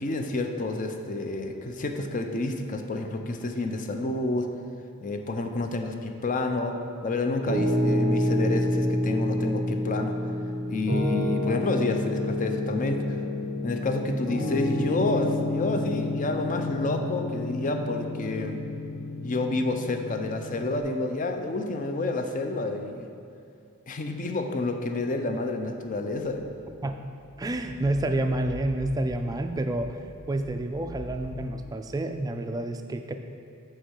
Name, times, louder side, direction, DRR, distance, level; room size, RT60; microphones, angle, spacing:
voice 1, 0.0-4.5 5.0-6.8 7.0-10.1 10.7-13.2 13.6-18.6 19.2-23.1 23.9-26.5, left 2 dB, 35° left, 5 dB, 0.5 m, -29 dB
Piano, 7.5-20.8, left 1 dB, 60° left, 1.6 m, -29 dB
sound 1, 26.5-31.6, equal, 10° left, 1.7 m, -44 dB
voice 2, 27.4-30.0 30.3-33.1, right 1 dB, 15° right, 6 dB, 0.3 m, -29 dB
6.5 x 4.5 x 6.3 m, 2.5 s
head